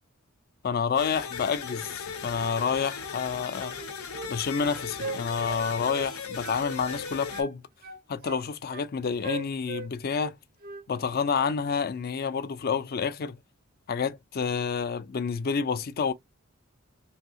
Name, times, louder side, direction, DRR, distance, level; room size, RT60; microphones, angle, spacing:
voice 1, 0.6-3.7 4.3-7.6 8.1-10.4 10.9-13.4 13.9-16.1, left 6 dB, 45° left, 0.4 m, -29 dB
sound 1, 0.9-7.4, left 5 dB, 80° left, 0.6 m, -37 dB
sound 2, 3.6-4.3 4.6-6.1 6.4-7.5 7.8-8.9 9.2-10.3 10.6-10.9, right 4 dB, 45° right, 0.4 m, -39 dB
2.8 x 2.6 x 2.8 m
head